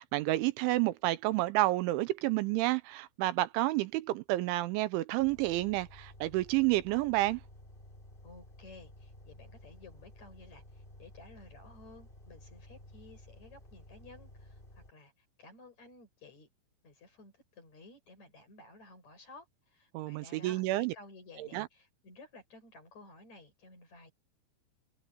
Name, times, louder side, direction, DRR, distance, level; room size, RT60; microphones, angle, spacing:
voice 1, 0.0-7.4 19.9-20.9 21.4-21.7, right 18 dB, 80° right, 3.1 m, -30 dB
sound 1, 5.2-14.9, left 1 dB, 10° left, 3.0 m, -54 dB
voice 2, 8.2-15.1 15.4-16.5 16.8-24.1, left 3 dB, 35° left, 7.0 m, -55 dB
omnidirectional pair, 5.5 m